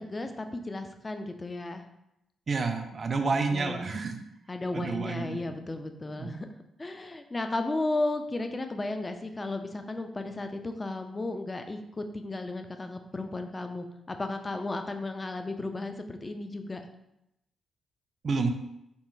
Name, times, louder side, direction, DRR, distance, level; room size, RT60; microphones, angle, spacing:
voice 1, 0.0-1.8 3.5-3.9 4.5-6.5 6.8-16.8, left 2 dB, 30° left, 7 dB, 0.4 m, -34 dB
voice 2, 2.5-4.1 4.7-5.4 6.2-6.3 18.2-18.5, right 4 dB, 50° right, 6 dB, 0.4 m, -29 dB
3.7 x 2.1 x 2.6 m, 0.85 s
supercardioid pair, 50°, 0 cm